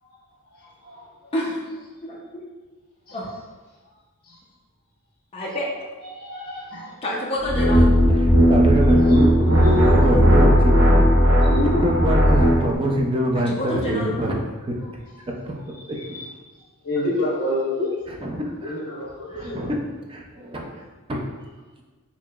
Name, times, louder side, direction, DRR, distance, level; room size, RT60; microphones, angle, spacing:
voice 1, 0.5-1.3 3.1-3.2 4.2-4.4 6.0-7.0 9.1-9.9 11.4-11.8 14.8-14.9 15.7-17.9 18.6-19.7, left 1 dB, 45° left, -7 dB, 1.4 m, -29 dB
voice 2, 5.3-5.7 7.0-7.9 13.5-14.1, left 1 dB, 25° left, -5 dB, 0.6 m, -27 dB
sound 1, 7.4-12.7, equal, 60° right, 0.9 m, -16 dB
voice 3, 8.5-11.4 11.8-14.4 14.7-14.8 15.4-15.5 15.9-16.0 18.2-18.8 19.4-19.8 20.1-20.7 21.1-21.2, equal, 25° right, 0 dB, 0.4 m, -25 dB
4.7 x 2.8 x 2.3 m, 1.3 s
head